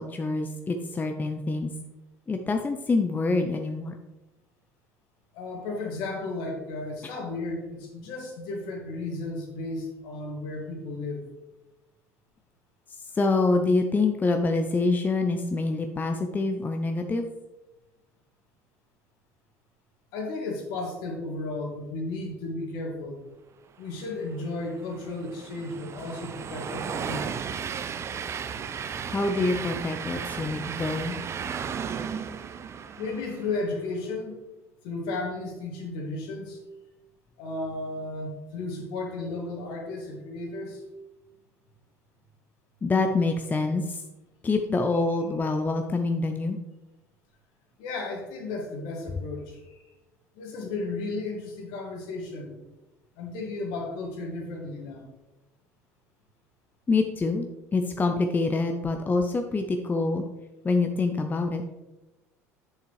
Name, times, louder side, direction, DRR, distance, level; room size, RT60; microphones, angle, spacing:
voice 1, 0.0-1.7 2.3-4.0 13.1-17.3 29.1-31.1 42.8-44.0 44.4-46.6 56.9-57.5 57.7-60.2 60.6-61.6, left 3 dB, 20° left, 5 dB, 0.6 m, -26 dB
voice 2, 5.3-11.3 20.1-23.2 23.8-27.3 32.9-34.4 34.8-36.6 37.4-40.8 47.8-49.8 50.4-52.6 53.2-55.1, left 2 dB, 60° left, 1 dB, 1.8 m, -34 dB
Train, 24.3-33.7, right 7 dB, 35° right, 0.5 m, -35 dB
8.2 x 6.7 x 3.2 m, 1.0 s
figure-of-eight pair, 65°, 8 cm